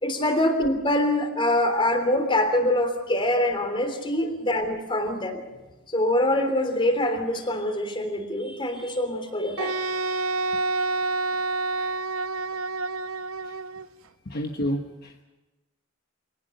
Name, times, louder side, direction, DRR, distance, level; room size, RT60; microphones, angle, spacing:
voice 1, 0.0-5.4 5.9-10.2, left 1 dB, 25° left, 6 dB, 3.3 m, -24 dB
Wind instrument woodwind instrument, 9.6-13.9, right 3 dB, 75° right, 0.7 m, -28 dB
voice 2, 14.2-15.2, equal, 50° left, 3 dB, 1.2 m, -32 dB
24.0 x 18.5 x 6.6 m, 1.1 s
head